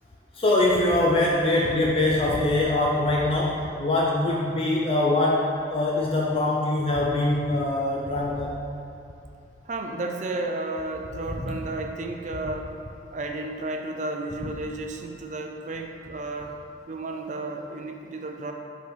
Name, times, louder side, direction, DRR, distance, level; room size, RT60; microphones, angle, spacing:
voice 1, 0.3-8.6 11.4-11.6, left 2 dB, 30° left, -4 dB, 0.5 m, -23 dB
voice 2, 9.7-12.7 13.1-16.5 16.9-18.5, right 2 dB, 40° right, 3 dB, 0.4 m, -32 dB
5.3 x 3.9 x 4.9 m, 2.7 s
head